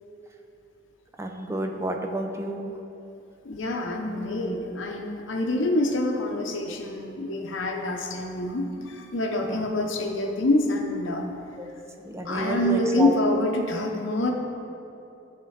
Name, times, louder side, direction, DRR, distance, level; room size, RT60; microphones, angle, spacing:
voice 1, 1.2-2.7 9.4-9.8 11.6-11.7 12.0-13.1, right 1 dB, 15° right, 3 dB, 0.5 m, -30 dB
voice 2, 3.4-11.2 12.2-14.3, left 1 dB, 70° left, 2 dB, 0.8 m, -26 dB
11.0 x 3.7 x 5.7 m, 2.8 s
head